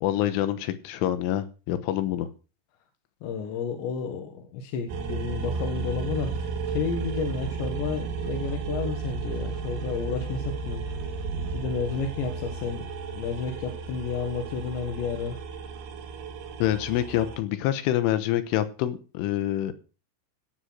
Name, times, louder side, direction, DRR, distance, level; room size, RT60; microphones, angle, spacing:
voice 1, 0.0-2.3 16.6-19.7, left 12 dB, 90° left, 11 dB, 3.6 m, -26 dB
voice 2, 3.2-11.1 11.5-12.8 13.1-15.4, left 5 dB, 70° left, 4 dB, 3.5 m, -31 dB
sound 1, 4.9-17.4, right 4 dB, 80° right, 4.1 m, -33 dB
17.5 x 6.6 x 6.3 m, 0.35 s
omnidirectional pair, 5.6 m